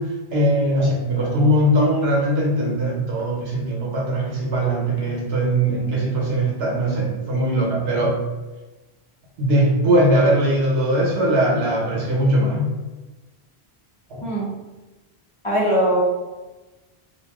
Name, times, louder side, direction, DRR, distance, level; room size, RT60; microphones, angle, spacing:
voice 1, 0.0-8.2 9.4-12.7 14.1-14.3, right 1 dB, 75° right, -3 dB, 1.0 m, -20 dB
voice 2, 15.4-16.0, equal, 35° left, -6 dB, 0.7 m, -20 dB
2.6 x 2.3 x 3.5 m, 1.1 s
omnidirectional pair, 1.1 m